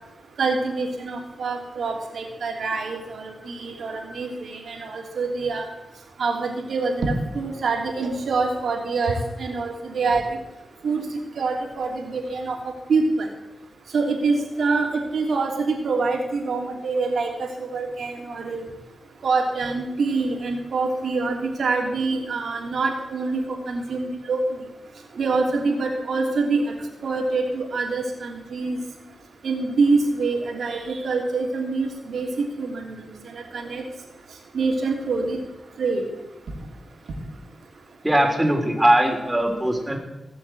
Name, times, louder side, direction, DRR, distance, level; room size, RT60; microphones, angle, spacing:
voice 1, 0.4-5.7 6.2-10.2 10.8-11.0 11.4-12.6 12.9-13.3 13.9-18.6 19.2-24.4 25.2-26.6 27.0-28.8 29.4-33.8 34.5-35.4 35.8-36.0, right 3 dB, 80° right, 2 dB, 3.1 m, -25 dB
voice 2, 38.0-40.0, right 1 dB, 15° right, 2 dB, 3.9 m, -20 dB
17.0 x 7.1 x 7.9 m, 0.99 s
cardioid pair, 60°, 0 cm